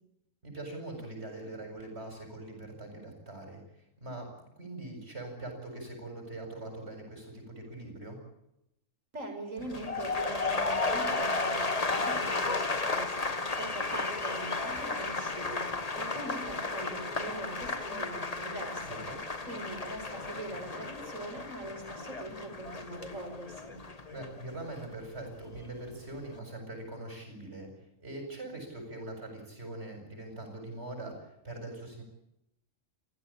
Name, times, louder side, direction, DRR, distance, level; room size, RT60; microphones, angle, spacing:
voice 1, 0.4-4.3 4.6-8.2 18.9-19.2 24.1-32.0, right 2 dB, 55° right, 3 dB, 7.9 m, -42 dB
voice 2, 9.1-18.9 19.5-23.7, right 1 dB, 80° right, 4 dB, 5.7 m, -42 dB
sound 1, 9.6-25.7 26.0-26.4, left 3 dB, 30° left, 1.5 m, -34 dB
29.0 x 16.0 x 8.9 m, 0.82 s
omnidirectional pair, 1.3 m